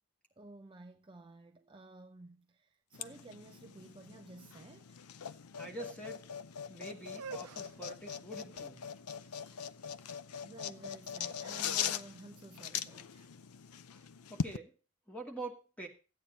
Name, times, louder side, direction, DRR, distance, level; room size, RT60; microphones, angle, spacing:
voice 1, 0.4-5.1 5.5-5.6 10.4-13.3, right 2 dB, 20° right, 0.6 m, -53 dB
sound 1, 2.9-14.6, left 7 dB, 85° left, 0.6 m, -41 dB
voice 2, 5.2-6.2 6.7-8.8 14.3-14.7 15.1-15.9, right 2 dB, 5° left, 2.3 m, -46 dB
sound 2, 7.0-12.9, right 6 dB, 90° right, 0.7 m, -53 dB
13.5 x 8.9 x 4.1 m
head